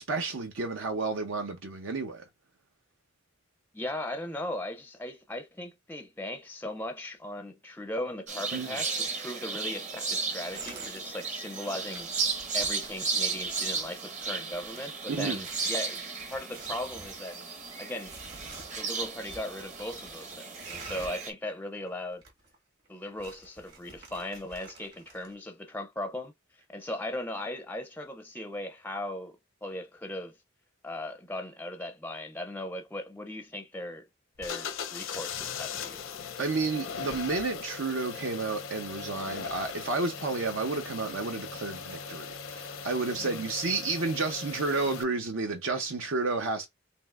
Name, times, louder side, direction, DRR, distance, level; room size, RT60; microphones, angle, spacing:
voice 1, 0.0-2.2 8.5-8.8 15.1-15.4 36.4-46.7, right 3 dB, 80° right, 0.7 m, -31 dB
voice 2, 3.7-12.1 12.5-17.4 17.8-18.2 18.8-22.2 22.9-26.3 26.7-30.4 30.8-34.1 34.4-36.0 43.1-43.4, left 1 dB, 10° left, 0.4 m, -38 dB
sound 1, 8.3-21.3, right 4 dB, 40° right, 0.9 m, -34 dB
sound 2, 10.3-11.3 11.6-21.3 21.5-21.6 21.9-22.6 22.9-25.3, right 3 dB, 55° right, 1.8 m, -50 dB
sound 3, 34.4-45.0, left 6 dB, 75° left, 0.6 m, -39 dB
5.3 x 2.7 x 2.4 m
head